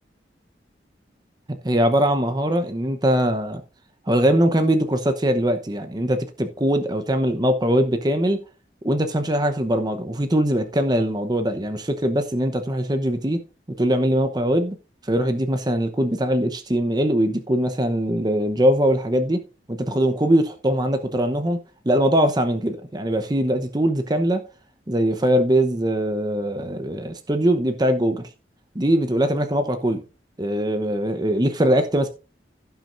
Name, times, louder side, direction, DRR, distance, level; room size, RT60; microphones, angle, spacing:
voice 1, 1.6-3.6 4.1-8.4 8.8-13.4 13.8-14.7 15.0-19.4 19.7-21.6 21.8-24.4 24.9-28.3 28.7-30.0 30.4-32.1, right 1 dB, 25° right, 0.9 m, -21 dB
16.0 x 6.2 x 2.6 m
head